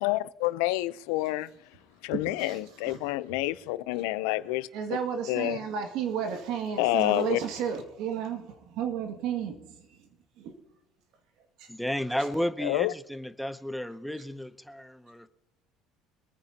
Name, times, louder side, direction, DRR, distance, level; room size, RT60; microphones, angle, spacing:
voice 1, 0.0-1.5 2.0-4.7 5.3-5.6 6.8-7.4 12.7-12.9, left 18 dB, 90° left, 0.6 m, -28 dB
voice 2, 2.1-3.0 4.7-9.7 10.4-10.5 11.6-11.7, right 7 dB, 70° right, 2.1 m, -33 dB
voice 3, 11.7-15.3, equal, ahead, 0.7 m, -33 dB
25.5 x 9.6 x 2.9 m
cardioid pair, 130°, 0 cm